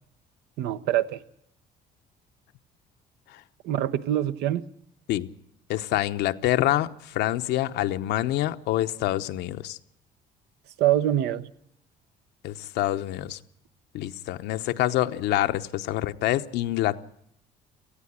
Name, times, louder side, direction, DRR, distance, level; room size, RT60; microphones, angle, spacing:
voice 1, 0.6-1.2 3.6-4.7 10.8-11.5, right 12 dB, 80° right, 12 dB, 1.0 m, -24 dB
voice 2, 5.7-9.8 12.4-13.4 13.9-17.0, left 14 dB, 80° left, 9 dB, 1.0 m, -26 dB
18.5 x 14.5 x 9.9 m, 0.72 s
cardioid pair, 110°, 17 cm